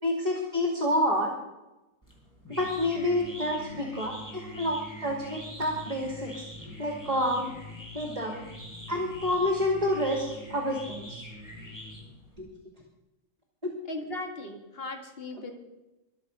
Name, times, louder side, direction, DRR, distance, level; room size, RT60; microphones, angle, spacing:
voice 1, 0.0-1.3 2.5-6.4 6.8-7.5 7.9-8.4 8.9-11.2 12.4-12.5 13.6-13.7, left 1 dB, 25° right, 0 dB, 2.5 m, -28 dB
sound 1, 2.0-12.4, equal, 10° left, 4.6 m, -43 dB
voice 2, 13.9-15.5, left 2 dB, 45° left, 4 dB, 2.2 m, -38 dB
23.5 x 7.8 x 5.4 m, 1.0 s
omnidirectional pair, 1.5 m